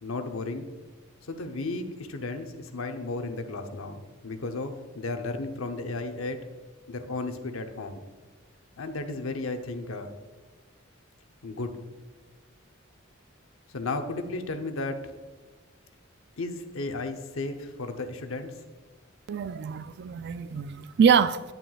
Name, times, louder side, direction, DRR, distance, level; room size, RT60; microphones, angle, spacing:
voice 1, 0.0-0.7 1.2-6.5 6.9-8.0 8.8-10.1 11.4-11.8 13.7-15.1 16.4-18.5, left 3 dB, 80° left, 0.8 m, -34 dB
voice 2, 19.3-21.4, right 7 dB, 55° right, 0.3 m, -24 dB
9.1 x 8.8 x 2.4 m
head